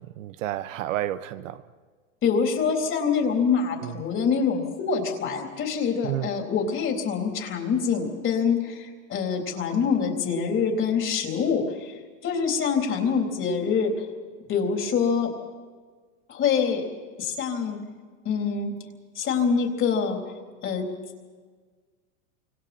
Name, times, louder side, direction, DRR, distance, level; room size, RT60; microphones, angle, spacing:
voice 1, 0.0-1.6 3.8-4.0 6.0-6.3, right 13 dB, 65° right, 1.2 m, -31 dB
voice 2, 2.2-14.1 14.5-15.3 16.3-16.9 17.2-17.8 18.3-18.8 19.2-20.3 20.6-20.9, left 6 dB, 30° left, 3.8 m, -25 dB
29.0 x 25.5 x 4.4 m
hypercardioid pair, 125°, 41 cm